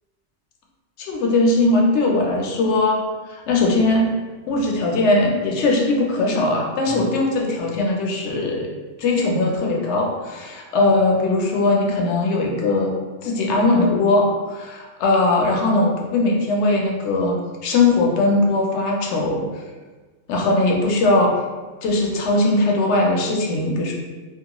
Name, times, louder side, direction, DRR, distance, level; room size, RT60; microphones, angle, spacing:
voice 1, 1.0-3.0 3.3-4.1 4.5-8.7 9.0-12.9 13.2-17.4 17.6-19.5 20.3-21.3 21.8-23.9, left 2 dB, 75° left, 0 dB, 0.8 m, -19 dB
2.5 x 2.2 x 2.8 m, 1.3 s
omnidirectional pair, 1.2 m